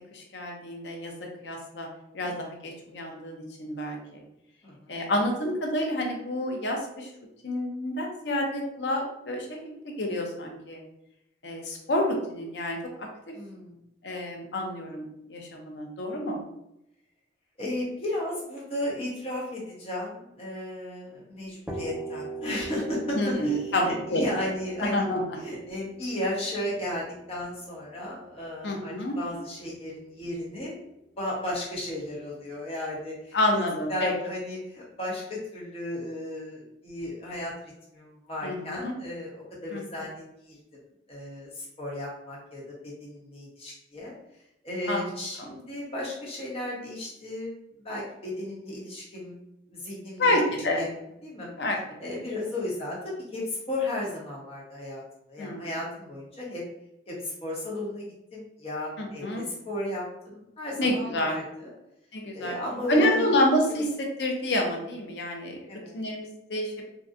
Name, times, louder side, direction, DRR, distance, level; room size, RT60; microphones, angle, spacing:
voice 1, 0.1-1.9 2.1-4.2 4.9-7.1 7.4-10.8 11.4-13.3 14.0-16.4 23.1-24.5 24.8-25.2 28.6-29.2 33.3-34.1 38.4-38.9 39.7-39.8 44.9-45.1 45.4-45.5 50.2-50.8 51.6-52.2 55.4-55.7 59.0-59.5 60.8-61.3 62.1-62.6 62.9-65.6 65.9-66.8, left 1 dB, 70° left, 1 dB, 0.6 m, -28 dB
voice 2, 4.6-4.9 13.3-13.8 17.6-25.1 25.4-30.8 31.2-33.6 33.9-37.5 37.9-40.6 41.1-44.2 44.6-47.5 47.8-49.4 49.7-50.4 50.8-50.9 51.2-51.5 52.0-55.0 55.3-56.6 57.1-58.1 58.3-61.7 62.3-63.8 65.7-65.9, left 1 dB, 35° left, -4 dB, 1.0 m, -34 dB
sound 1, 21.7-29.4, right 4 dB, 10° right, 0.4 m, -40 dB
3.7 x 2.2 x 2.6 m, 0.82 s
head